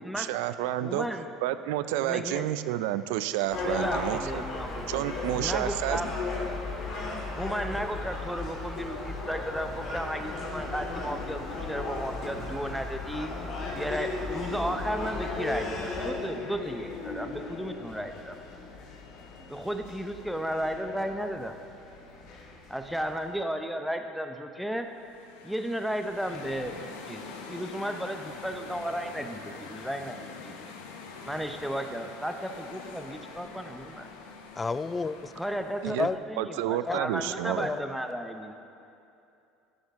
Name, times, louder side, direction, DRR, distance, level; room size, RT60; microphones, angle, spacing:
voice 1, 0.2-1.1 1.4-4.4 4.9-6.0 35.8-36.1 36.4-37.7, right 13 dB, 80° right, 13 dB, 0.4 m, -30 dB
voice 2, 0.8-1.3 2.0-2.5 3.7-6.1 7.3-13.3 13.7-18.4 19.5-21.5 22.7-24.9 25.4-26.8 27.1-27.2 27.5-30.7 31.2-34.1 35.3-38.5, equal, ahead, 6 dB, 0.7 m, -34 dB
Gull seagull, 3.5-16.1, left 3 dB, 50° left, 2.4 m, -35 dB
sound 1, 9.4-23.3, left 4 dB, 65° left, 1.5 m, -43 dB
sound 2, 24.8-36.2, left 4 dB, 85° left, 0.9 m, -45 dB
voice 3, 34.6-35.3 35.8-36.2 36.9-37.0 37.6-37.8, left 4 dB, 20° left, 14 dB, 0.3 m, -30 dB
13.5 x 6.4 x 3.6 m, 2.7 s
supercardioid pair, 85°, 0 cm